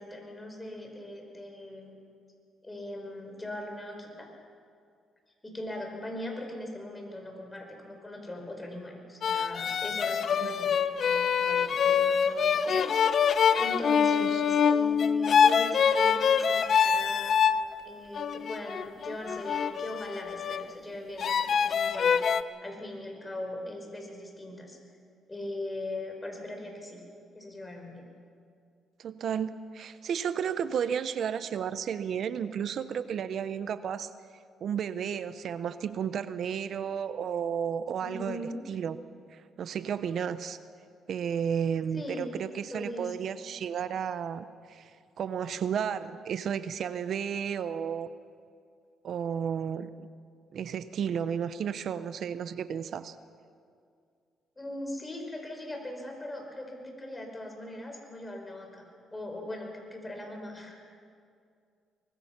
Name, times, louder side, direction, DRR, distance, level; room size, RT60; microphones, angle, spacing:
voice 1, 0.0-1.9 2.6-4.3 5.4-12.9 13.6-17.5 17.8-22.1 22.6-24.8 25.3-27.0 27.3-28.1 38.0-38.6 41.9-42.3 42.7-43.3 54.6-58.8 59.1-61.0, left 1 dB, 15° left, 2 dB, 5.1 m, -40 dB
sound 1, 9.2-17.6 18.2-20.7 21.2-22.4, left 7 dB, 55° left, 0.7 m, -25 dB
voice 2, 29.0-34.1 34.6-38.4 38.7-39.0 39.3-40.6 41.1-44.9 45.2-48.1 49.0-50.1 50.5-53.2, right 8 dB, 65° right, 13 dB, 0.7 m, -32 dB
24.0 x 20.5 x 5.9 m, 2.3 s
cardioid pair, 90°, 0 cm